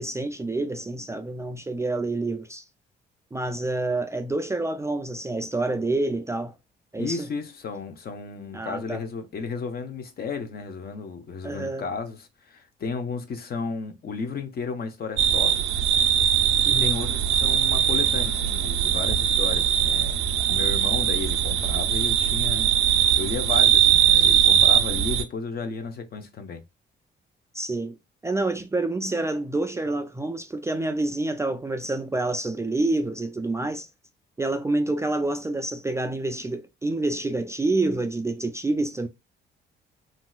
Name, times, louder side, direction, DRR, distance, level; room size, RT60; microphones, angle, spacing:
voice 1, 0.0-2.6 3.3-6.5 6.9-7.3 8.5-9.0 11.4-11.9 16.7-17.0 27.5-28.0 28.2-33.9 34.4-39.1, right 2 dB, 15° right, 0.3 m, -28 dB
voice 2, 7.0-15.5 16.7-20.2 20.5-22.8 23.2-26.6, left 5 dB, 50° left, 0.7 m, -33 dB
sound 1, 15.2-25.2, right 9 dB, 90° right, 0.5 m, -21 dB
3.1 x 2.7 x 2.3 m
cardioid pair, 90°, 20 cm